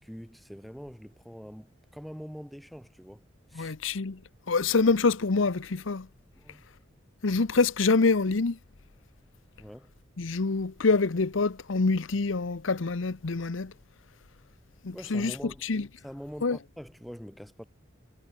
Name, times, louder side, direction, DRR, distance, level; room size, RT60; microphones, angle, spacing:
voice 1, 0.0-3.2 3.5-3.7 6.3-6.6 9.6-9.9 14.9-15.6 16.0-17.7, equal, ahead, 3.3 m, -44 dB
voice 2, 3.6-4.2 4.5-6.1 7.2-8.6 10.2-13.7 14.8-15.3 15.6-15.9 16.4-16.6, left 4 dB, 85° left, 0.8 m, -26 dB
head